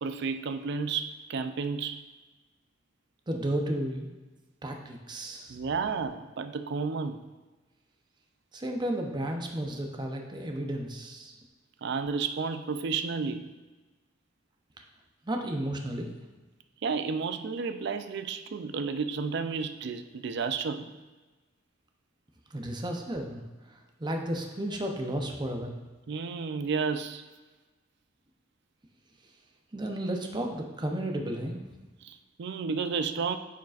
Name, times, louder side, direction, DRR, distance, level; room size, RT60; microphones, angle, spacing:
voice 1, 0.0-2.0 5.5-7.2 11.8-13.4 16.8-20.9 26.1-27.3 32.0-33.4, right 5 dB, 60° right, 9 dB, 0.4 m, -32 dB
voice 2, 3.3-4.1 4.6-5.6 8.5-11.3 15.3-16.1 22.5-23.4 23.7-25.8 29.7-31.6, right 1 dB, 25° right, 3 dB, 0.7 m, -33 dB
9.1 x 5.0 x 2.4 m, 1.2 s
head